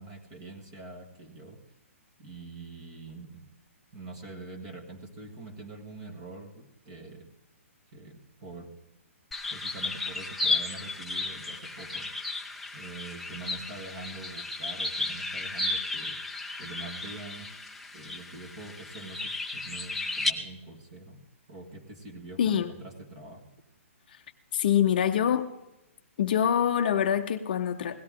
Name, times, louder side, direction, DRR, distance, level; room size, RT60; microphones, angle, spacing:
voice 1, 0.0-1.6 2.2-3.5 3.9-7.3 7.9-8.7 9.5-12.1 12.7-16.2 16.6-17.5 17.9-21.2 21.5-23.4, right 2 dB, 25° right, 4 dB, 1.6 m, -44 dB
sound 1, 9.3-20.3, left 2 dB, ahead, 0.3 m, -34 dB
voice 2, 22.4-22.7 24.5-25.5 26.2-28.0, left 9 dB, 40° left, 7 dB, 0.6 m, -25 dB
17.0 x 13.0 x 3.7 m, 0.92 s
hypercardioid pair, 175°, 8 cm